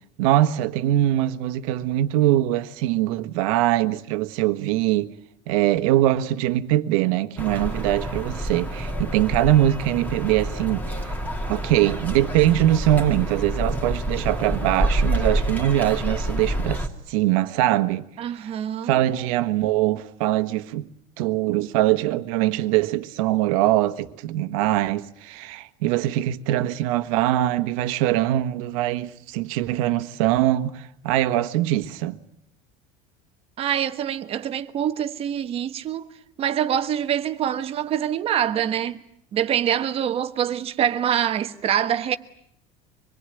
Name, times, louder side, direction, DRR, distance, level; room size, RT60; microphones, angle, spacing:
voice 1, 0.2-5.1 5.5-10.8 11.5-18.0 18.4-18.5 18.8-20.9 21.2-32.2, right 14 dB, 80° right, 1.5 m, -22 dB
sound 1, 7.4-16.9, right 1 dB, 10° left, 2.5 m, -27 dB
voice 2, 18.2-19.0 33.6-36.1 36.4-39.0 39.3-42.2, right 9 dB, 35° right, 1.3 m, -25 dB
25.5 x 21.5 x 9.1 m
cardioid pair, 155°, 17 cm